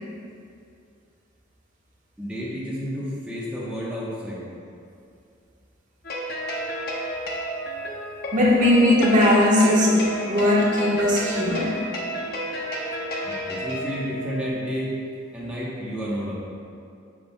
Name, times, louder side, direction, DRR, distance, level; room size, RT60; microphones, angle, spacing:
voice 1, 2.2-4.5 13.2-14.9 15.3-16.3, equal, 5° right, -8 dB, 1.0 m, -31 dB
sound 1, 6.0-14.5, equal, 50° left, 0.8 m, -31 dB
voice 2, 8.3-11.7, left 1 dB, 40° right, -5 dB, 1.2 m, -19 dB
9.0 x 6.1 x 2.3 m, 2.5 s
head